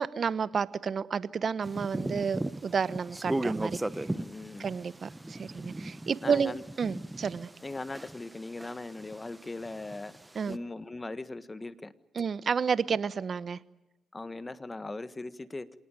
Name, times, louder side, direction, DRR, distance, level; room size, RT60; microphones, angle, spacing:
voice 1, 0.0-3.8 4.6-7.5 10.3-10.6 12.1-13.6, right 6 dB, 50° right, 16 dB, 1.0 m, -31 dB
sound 1, 1.6-8.4 8.6-10.5, right 1 dB, 15° right, 0.9 m, -36 dB
voice 2, 2.0-2.3 3.8-4.7 6.2-6.6 7.6-10.1 10.4-11.9 14.1-15.7, left 2 dB, 25° left, 13 dB, 1.5 m, -39 dB
27.0 x 18.5 x 9.2 m, 1.0 s
cardioid pair, 70°, 0 cm